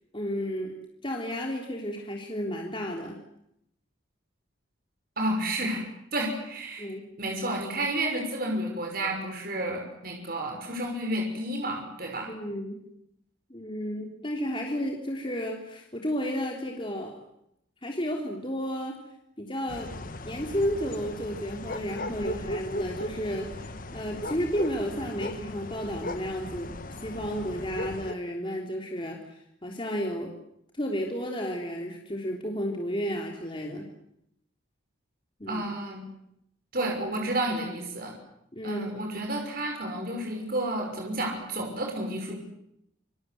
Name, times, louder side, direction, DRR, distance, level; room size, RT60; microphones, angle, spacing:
voice 1, 0.1-0.8 1.0-3.2 6.8-7.0 12.3-12.8 13.5-17.1 17.8-19.0 19.4-19.9 20.2-30.3 30.7-33.8 35.4-35.6 38.5-38.8, equal, 25° left, 1 dB, 3.4 m, -32 dB
voice 2, 5.2-5.8 6.1-6.9 7.2-12.3 35.5-36.0 36.7-38.1 38.6-42.4, right 1 dB, 50° right, 2 dB, 6.1 m, -31 dB
sound 1, 19.7-28.1, left 1 dB, 45° left, 1.4 m, -37 dB
28.0 x 25.5 x 8.0 m, 0.78 s
head